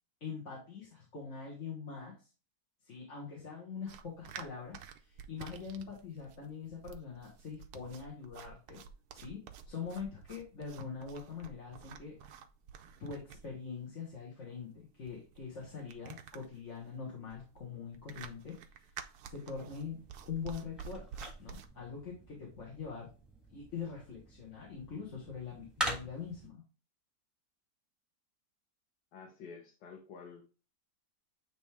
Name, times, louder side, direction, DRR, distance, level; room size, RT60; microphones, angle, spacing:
voice 1, 0.2-2.3 2.8-8.8 9.1-12.2 13.0-18.5 19.3-20.0 20.3-21.1 21.4-23.1 23.5-26.6, left 6 dB, 45° left, -4 dB, 1.8 m, -43 dB
sound 1, 3.9-21.7, right 7 dB, 70° right, 1.1 m, -50 dB
sound 2, 19.6-26.5, equal, ahead, 1.3 m, -44 dB
voice 2, 29.1-30.4, left 5 dB, 75° left, 2 dB, 1.6 m, -50 dB
8.9 x 3.2 x 3.4 m, 0.33 s
omnidirectional pair, 1.8 m